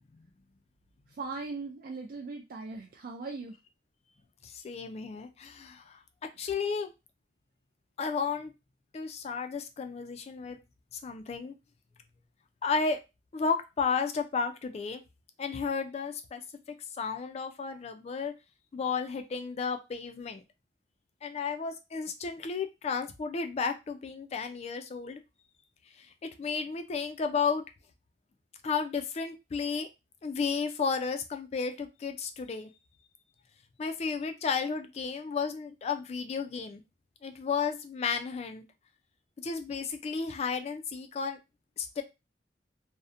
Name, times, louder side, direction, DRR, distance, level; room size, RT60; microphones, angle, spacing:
voice 1, 1.1-3.6, right 3 dB, 55° right, 2 dB, 0.3 m, -39 dB
voice 2, 4.4-6.0 6.4-6.9 8.0-8.5 8.9-10.6 11.0-11.5 12.6-13.0 13.3-15.0 15.4-16.4 17.0-18.3 18.7-20.4 21.2-25.2 26.2-27.6 28.6-29.9 30.2-32.7 33.8-36.8 37.2-38.6 39.4-41.4 41.8-42.0, left 5 dB, 40° left, 6 dB, 0.3 m, -33 dB
2.7 x 2.0 x 2.4 m, 0.25 s
head